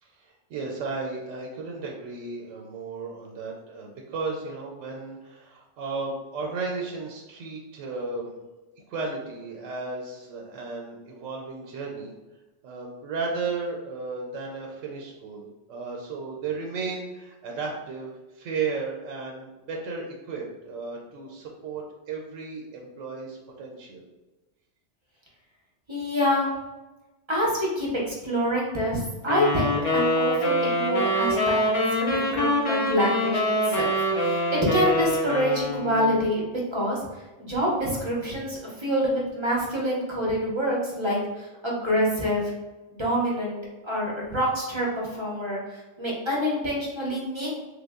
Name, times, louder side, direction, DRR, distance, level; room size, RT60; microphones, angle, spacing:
voice 1, 0.0-8.4 8.9-12.1 12.6-24.0, right 4 dB, 90° right, -1 dB, 0.9 m, -34 dB
voice 2, 25.9-26.5 27.3-33.4 33.7-36.4 36.7-37.0 37.4-42.5 42.9-43.6 43.8-47.6, equal, 30° right, -4 dB, 0.6 m, -26 dB
sound 1, 29.3-36.2, left 1 dB, 45° left, 0.4 m, -25 dB
3.4 x 2.0 x 3.4 m, 1.1 s
omnidirectional pair, 1.3 m